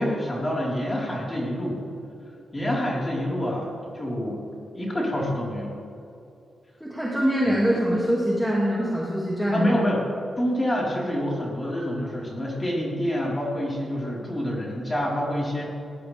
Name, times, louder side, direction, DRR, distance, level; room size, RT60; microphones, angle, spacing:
voice 1, 0.0-1.8 2.5-4.4 4.7-5.7 7.5-7.6 9.5-10.0 10.4-15.7, equal, 15° left, -5 dB, 4.3 m, -27 dB
voice 2, 6.8-9.7, equal, ahead, -6 dB, 2.3 m, -23 dB
21.0 x 19.0 x 3.5 m, 2.6 s
wide cardioid pair, 175°, 0 cm